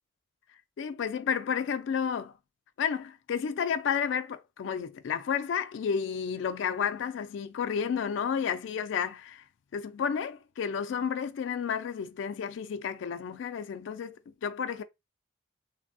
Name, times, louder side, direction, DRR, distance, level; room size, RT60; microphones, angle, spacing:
voice 1, 0.8-2.3 2.8-9.4 9.7-14.2 14.4-14.8, left 7 dB, 75° left, 0.3 m, -31 dB
3.3 x 2.0 x 2.6 m
head